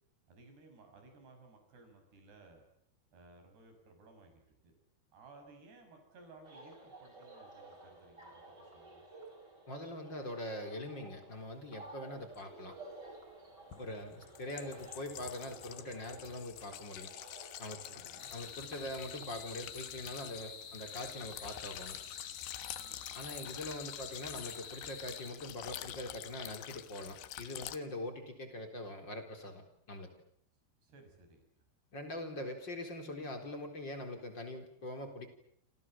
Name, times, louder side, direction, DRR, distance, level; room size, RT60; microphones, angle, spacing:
voice 1, 0.3-2.6 3.1-4.8 5.1-9.0 17.9-18.3 22.8-23.0 30.8-31.4, right 3 dB, 70° right, 5 dB, 8.4 m, -59 dB
sound 1, 6.4-19.2, right 2 dB, 20° right, 6.5 m, -54 dB
voice 2, 9.7-12.8 13.8-17.1 17.6-22.0 23.1-30.1 31.9-35.3, left 1 dB, 25° left, 6 dB, 4.2 m, -43 dB
sound 2, 12.3-12.4 13.7-27.8, left 13 dB, 90° left, 3.7 m, -47 dB
sound 3, 18.2-25.3, left 6 dB, 55° left, 4.1 m, -49 dB
28.5 x 27.5 x 7.5 m, 0.72 s
omnidirectional pair, 4.9 m